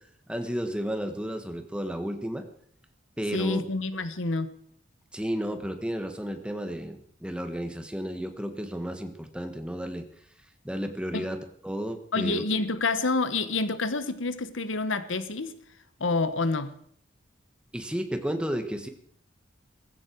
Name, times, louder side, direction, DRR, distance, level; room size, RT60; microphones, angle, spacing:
voice 1, 0.3-2.5 3.2-3.6 5.1-10.0 10.6-11.4 11.6-12.4 17.7-18.9, equal, 5° right, 1.5 m, -32 dB
voice 2, 3.3-4.5 11.1-11.3 12.1-15.5 16.0-16.7, left 3 dB, 80° left, 1.2 m, -28 dB
18.5 x 15.5 x 4.6 m
head